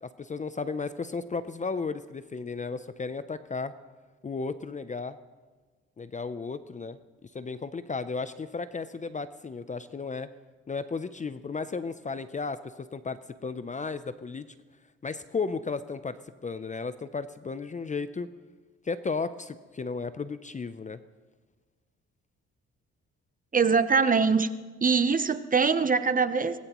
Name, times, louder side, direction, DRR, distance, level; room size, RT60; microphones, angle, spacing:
voice 1, 0.0-3.7 4.2-5.2 6.0-10.3 10.7-12.6 12.9-14.5 15.0-18.3 18.8-21.0, left 4 dB, 25° left, 13 dB, 0.6 m, -34 dB
voice 2, 23.5-24.5 24.8-26.6, right 5 dB, 25° right, 11 dB, 0.8 m, -23 dB
24.0 x 18.5 x 3.0 m, 1.3 s
cardioid pair, 90°, 30 cm